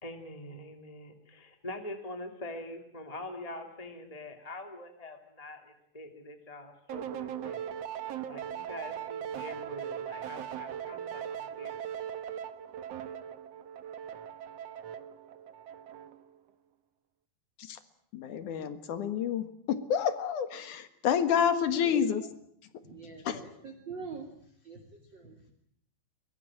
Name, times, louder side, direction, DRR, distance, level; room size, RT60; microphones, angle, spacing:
voice 1, 0.0-7.7 8.2-11.8, left 1 dB, 10° left, 5 dB, 1.8 m, -44 dB
sound 1, 6.9-16.3, right 9 dB, 75° right, 1.4 m, -39 dB
voice 2, 18.1-22.2 23.2-23.4, left 8 dB, 60° left, 11 dB, 2.6 m, -29 dB
voice 3, 21.8-22.3 22.8-24.3 24.6-25.5, right 4 dB, 30° right, 3 dB, 2.9 m, -44 dB
23.0 x 22.0 x 8.7 m, 0.68 s
omnidirectional pair, 4.8 m